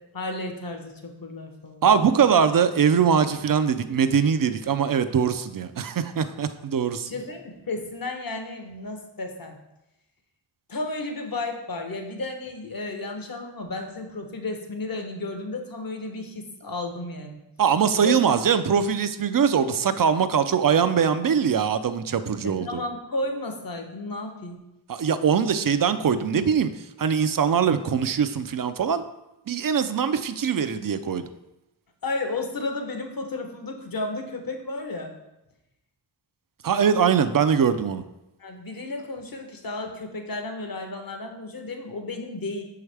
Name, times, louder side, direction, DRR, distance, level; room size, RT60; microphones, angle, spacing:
voice 1, 0.1-1.8 7.1-9.6 10.7-17.4 18.0-18.2 22.4-24.6 32.0-35.1 38.4-42.6, left 2 dB, 50° left, 4 dB, 1.0 m, -33 dB
voice 2, 1.8-7.1 17.6-22.8 24.9-26.7 27.0-29.0 29.5-31.2 36.6-38.0, right 7 dB, 50° right, 11 dB, 0.5 m, -22 dB
6.2 x 4.7 x 3.3 m, 0.92 s
wide cardioid pair, 55°, 44 cm